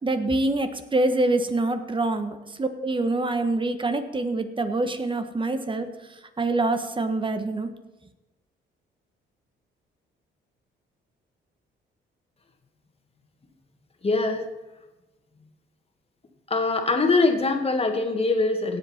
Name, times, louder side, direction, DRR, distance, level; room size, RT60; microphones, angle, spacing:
voice 1, 0.0-5.9 6.4-7.7, right 2 dB, 25° right, 8 dB, 1.4 m, -25 dB
voice 2, 14.0-14.4 16.5-18.8, left 3 dB, 30° left, 4 dB, 1.9 m, -23 dB
17.0 x 7.7 x 4.4 m, 1.1 s
cardioid pair, 90°, 20 cm